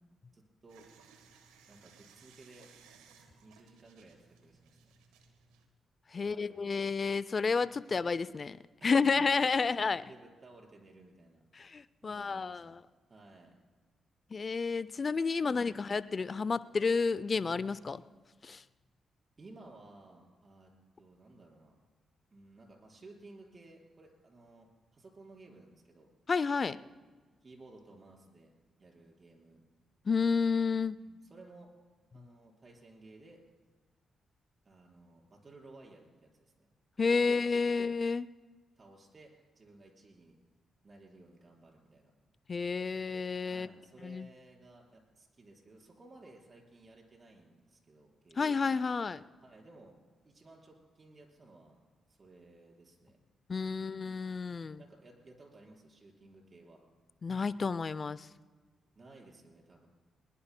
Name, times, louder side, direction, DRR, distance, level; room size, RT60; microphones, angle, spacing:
voice 1, 0.3-0.9 1.7-2.7 3.4-4.9 6.2-6.8 8.8-9.1 9.6-11.4 12.0-12.8 13.1-13.6 15.4-15.8 19.4-21.8 22.3-26.1 27.4-28.5 28.8-29.6 31.0-31.7 32.1-33.4 34.6-36.7 37.1-37.3 37.6-37.9 38.8-40.4 40.8-42.1 43.5-48.7 49.4-50.0 50.2-51.8 52.1-53.2 53.7-54.1 54.8-56.8 58.9-59.9, right 2 dB, 45° right, -1 dB, 4.6 m, -56 dB
sound 1, 0.7-5.7, right 6 dB, 90° right, 1.2 m, -61 dB
voice 2, 6.1-8.6 8.8-10.0 11.5-12.8 14.3-18.0 18.4-18.6 26.3-26.8 30.1-31.0 37.0-38.3 42.5-43.7 44.0-44.3 48.4-49.2 53.5-54.8 57.2-58.3, left 5 dB, 45° left, 17 dB, 0.4 m, -30 dB
22.0 x 19.5 x 2.2 m, 1.4 s
hypercardioid pair, 45°, 0 cm